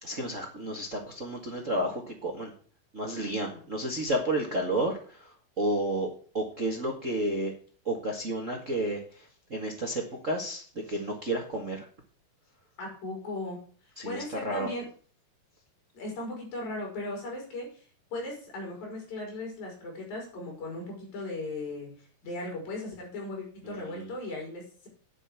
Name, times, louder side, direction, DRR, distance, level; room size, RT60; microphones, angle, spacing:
voice 1, 0.0-2.5 2.9-5.0 5.6-6.1 6.3-7.5 7.8-9.0 9.5-11.8 14.0-14.7 23.7-23.8, right 1 dB, 55° right, 1 dB, 0.8 m, -31 dB
voice 2, 3.5-4.0 12.8-14.9 15.9-21.9 22.2-24.9, left 2 dB, 60° left, 0 dB, 6.5 m, -38 dB
9.8 x 6.3 x 8.4 m, 0.42 s
omnidirectional pair, 4.7 m